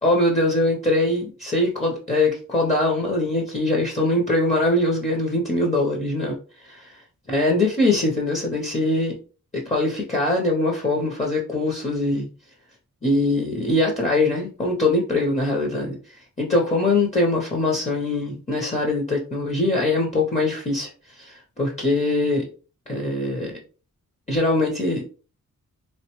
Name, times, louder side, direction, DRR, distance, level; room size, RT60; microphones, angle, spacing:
voice 1, 0.0-6.4 6.6-7.0 7.3-9.2 9.5-12.3 13.0-16.0 16.4-22.4 22.9-23.5 24.3-25.1, left 2 dB, 20° left, -1 dB, 0.6 m, -22 dB
3.4 x 2.1 x 2.9 m, 0.37 s
wide cardioid pair, 140°, 31 cm